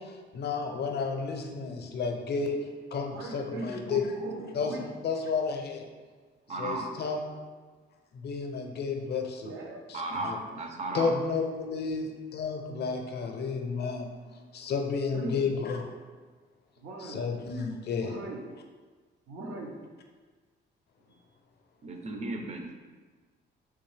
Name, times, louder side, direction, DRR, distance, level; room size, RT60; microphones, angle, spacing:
voice 1, 0.0-4.1 4.5-5.9 6.6-7.4 8.1-9.5 9.9-10.4 10.9-14.1 14.5-15.9 17.0-18.2, left 5 dB, 55° left, 4 dB, 0.5 m, -32 dB
voice 2, 3.1-4.9 9.4-9.8 15.1-15.5 16.8-17.3 18.0-18.4 19.3-19.7, right 2 dB, 80° right, -1 dB, 0.7 m, -39 dB
voice 3, 6.5-6.9 9.9-11.1 21.8-22.7, right 2 dB, 35° right, 3 dB, 0.5 m, -35 dB
3.6 x 2.6 x 3.2 m, 1.4 s
cardioid pair, 90°, 20 cm